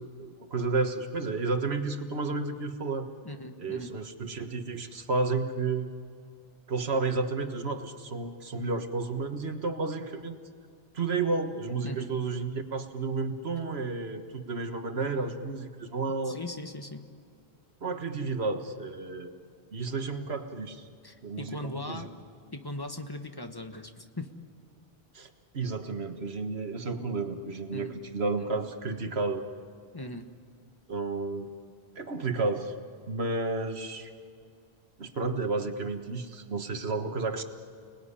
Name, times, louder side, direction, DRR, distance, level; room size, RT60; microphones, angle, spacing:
voice 1, 0.0-3.1 3.6-5.9 6.7-10.4 10.9-16.4 17.8-19.3 19.7-20.9 21.2-22.1 25.1-29.4 30.9-31.5 32.0-32.7 33.1-34.1 35.0-37.4, right 3 dB, 80° right, 7 dB, 1.7 m, -32 dB
voice 2, 3.2-3.9 11.8-12.1 16.2-17.0 21.0-22.1 22.5-24.3 27.7-27.9 29.9-30.3, left 1 dB, 20° left, 6 dB, 1.4 m, -39 dB
30.0 x 20.0 x 10.0 m, 2.3 s
omnidirectional pair, 1.1 m